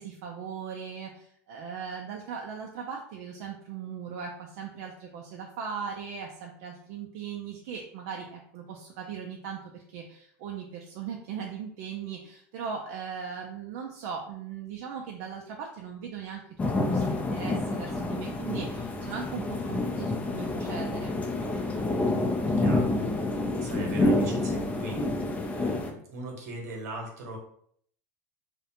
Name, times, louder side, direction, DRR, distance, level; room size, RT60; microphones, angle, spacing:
voice 1, 0.0-21.2, right 6 dB, 65° right, 0 dB, 0.4 m, -39 dB
sound 1, 16.6-25.9, left 2 dB, 15° left, 0.4 m, -28 dB
voice 2, 22.5-27.4, right 1 dB, 80° right, 0 dB, 0.9 m, -40 dB
2.4 x 2.1 x 2.8 m, 0.65 s
supercardioid pair, 110°, 8 cm